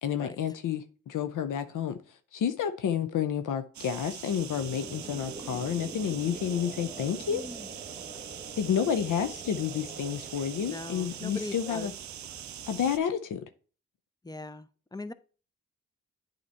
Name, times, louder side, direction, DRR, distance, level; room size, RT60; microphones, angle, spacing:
voice 1, 0.0-2.0 2.3-7.4 8.6-11.9 12.7-13.4, left 8 dB, 80° left, 0.6 m, -30 dB
sound 1, 3.7-13.0, right 11 dB, 65° right, 0.5 m, -43 dB
sound 2, 4.5-13.0, right 2 dB, 25° right, 0.9 m, -46 dB
voice 2, 7.3-7.7 10.7-11.9 14.2-15.1, left 2 dB, 15° left, 0.6 m, -40 dB
8.4 x 3.0 x 4.4 m
cardioid pair, 45°, 31 cm